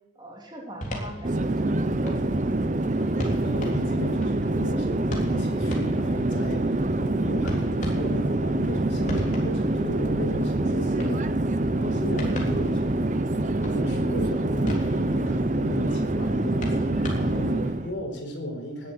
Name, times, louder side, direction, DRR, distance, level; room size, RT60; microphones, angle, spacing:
voice 1, 0.2-3.0, equal, 20° right, 0 dB, 2.8 m, -42 dB
sound 1, 0.8-17.7, equal, 40° left, 3.5 m, -37 dB
Conversation / Chatter / Fixed-wing aircraft airplane, 1.2-17.9, right 2 dB, 40° right, 0.7 m, -25 dB
voice 2, 3.4-12.8 13.3-18.9, equal, 65° left, 2 dB, 4.4 m, -35 dB
19.0 x 7.6 x 7.7 m, 1.1 s
head